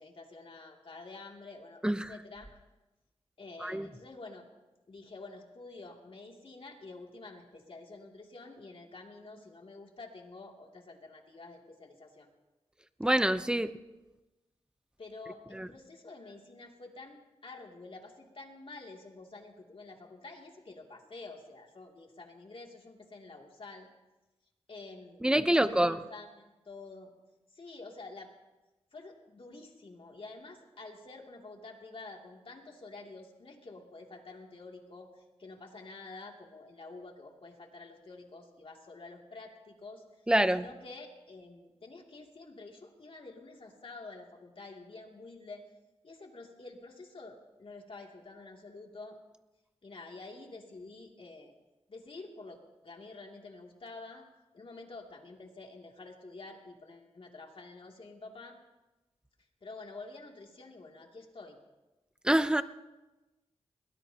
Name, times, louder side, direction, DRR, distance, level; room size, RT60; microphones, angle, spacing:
voice 1, 0.0-2.5 3.4-4.5 4.9-12.3 15.0-23.9 24.7-27.1 27.5-28.3 28.9-40.2 40.5-45.6 46.0-49.2 49.8-51.6 51.9-52.6 52.8-54.2 54.5-58.5 59.6-61.6, left 3 dB, 55° left, 1 dB, 2.7 m, -48 dB
voice 2, 13.0-13.7 15.5-15.7 25.2-26.0 40.3-40.7 62.2-62.6, right 1 dB, 5° right, 11 dB, 0.8 m, -26 dB
21.5 x 20.0 x 2.9 m, 1.1 s
wide cardioid pair, 70°, 11 cm